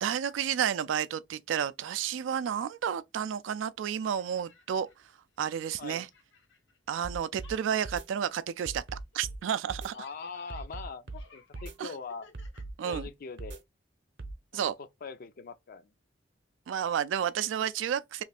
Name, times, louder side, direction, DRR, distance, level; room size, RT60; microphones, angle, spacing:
voice 1, 0.0-4.9 5.4-6.1 6.9-8.8 9.1-10.0 11.8-11.9 12.8-13.1 14.5-14.7 16.7-18.2, right 8 dB, 85° right, 0.3 m, -31 dB
sound 1, 4.0-7.1 7.3-13.3, left 4 dB, 85° left, 1.0 m, -59 dB
sound 2, 7.0-7.5 7.8-8.1 8.7-9.4 9.7-9.9 10.5-11.2 11.5-11.8 12.3-13.1 13.4-13.6 14.2-14.4, right 2 dB, 65° right, 0.7 m, -40 dB
voice 2, 9.9-12.3 12.8-13.6 14.5-14.6 15.0-15.9, left 5 dB, 50° left, 0.4 m, -42 dB
3.1 x 2.4 x 3.4 m
head